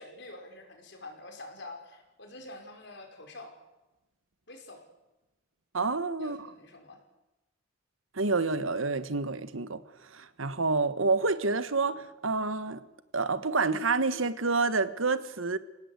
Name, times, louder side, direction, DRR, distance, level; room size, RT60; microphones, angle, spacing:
voice 1, 0.0-3.5 4.5-4.8 6.2-7.0, left 2 dB, 60° left, 5.4 m, -46 dB
voice 2, 5.7-6.5 8.1-9.8 10.1-12.8 13.1-15.6, right 3 dB, 80° right, 1.4 m, -28 dB
27.5 x 18.0 x 8.2 m
head